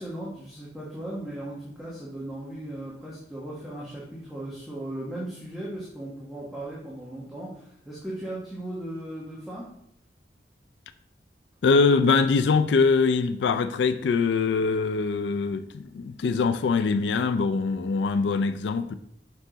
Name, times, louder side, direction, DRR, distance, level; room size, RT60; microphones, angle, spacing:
voice 1, 0.0-9.7, right 1 dB, ahead, 1.2 m, -37 dB
voice 2, 11.6-18.9, left 4 dB, 75° left, 0.3 m, -23 dB
5.8 x 4.7 x 3.9 m
head